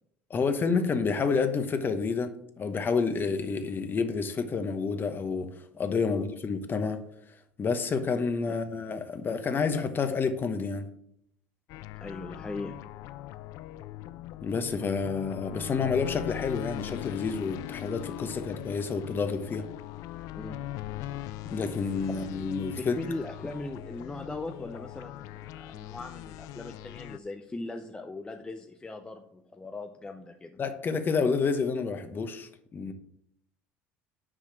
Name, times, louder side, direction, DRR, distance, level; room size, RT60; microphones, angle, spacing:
voice 1, 0.3-7.0 7.6-10.9 14.4-19.6 21.4-22.9 30.6-32.9, left 5 dB, 35° left, 1.0 m, -29 dB
sound 1, 11.7-27.2, left 14 dB, 70° left, 0.3 m, -40 dB
voice 2, 12.0-12.9 20.4-20.6 22.8-30.6, left 2 dB, 15° left, 0.6 m, -39 dB
6.2 x 4.9 x 5.9 m
supercardioid pair, 85°, 6 cm